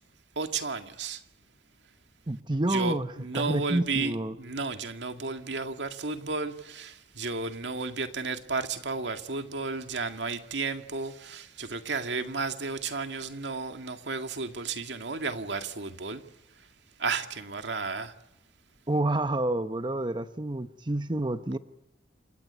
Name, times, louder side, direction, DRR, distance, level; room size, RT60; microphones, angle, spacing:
voice 1, 0.4-1.2 2.7-16.2 17.0-18.1, right 4 dB, 75° right, 2.1 m, -33 dB
voice 2, 2.3-3.1 3.4-4.4 18.9-21.6, right 2 dB, 25° right, 0.8 m, -28 dB
29.0 x 16.5 x 9.8 m
head